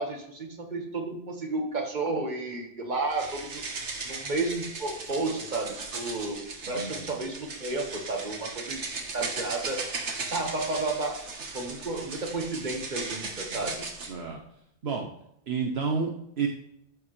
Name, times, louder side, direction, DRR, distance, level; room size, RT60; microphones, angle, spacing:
voice 1, 0.0-3.6 4.0-9.8 10.3-11.2 11.5-13.8, right 2 dB, 40° right, 3 dB, 1.6 m, -32 dB
sound 1, 3.1-14.1, right 4 dB, 85° right, 1.6 m, -37 dB
voice 2, 14.1-14.4 14.8-15.1 15.5-16.5, right 5 dB, 65° right, 1 dB, 1.1 m, -30 dB
14.0 x 7.1 x 3.2 m, 0.75 s
omnidirectional pair, 1.2 m